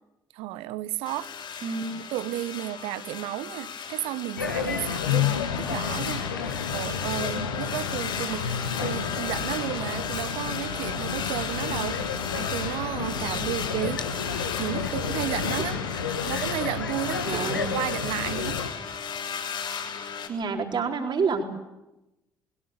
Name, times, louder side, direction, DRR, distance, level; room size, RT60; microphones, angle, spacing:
voice 1, 0.3-1.3 2.1-8.5 8.8-12.0 12.3-14.0 14.6-15.8 16.3-18.6, right 15 dB, 65° right, 1.0 m, -33 dB
sound 1, 1.0-20.3, left 7 dB, 50° left, 6.3 m, -34 dB
sound 2, 4.4-18.7, left 6 dB, 80° left, 1.6 m, -31 dB
voice 2, 17.3-17.7 20.3-21.4, right 5 dB, 45° right, 4.3 m, -28 dB
28.0 x 21.5 x 8.3 m
figure-of-eight pair, 45°, 10 cm